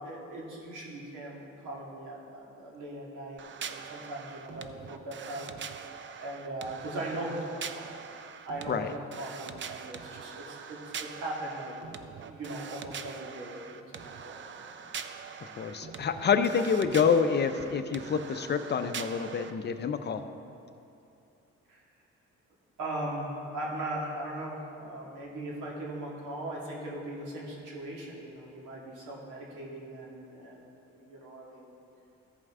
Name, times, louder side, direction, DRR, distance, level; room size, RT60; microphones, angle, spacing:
voice 1, 0.0-5.5 6.2-7.9 8.5-10.8 11.1-11.7 12.3-13.6 13.9-14.7 21.7-21.8 22.8-31.8, right 1 dB, 80° right, -3 dB, 2.0 m, -39 dB
sound 1, 3.4-19.5, right 7 dB, 40° right, 0.5 m, -43 dB
voice 2, 15.4-20.2, left 6 dB, 35° left, 9 dB, 0.5 m, -27 dB
14.5 x 5.3 x 3.7 m, 2.7 s
cardioid pair, 90°, 30 cm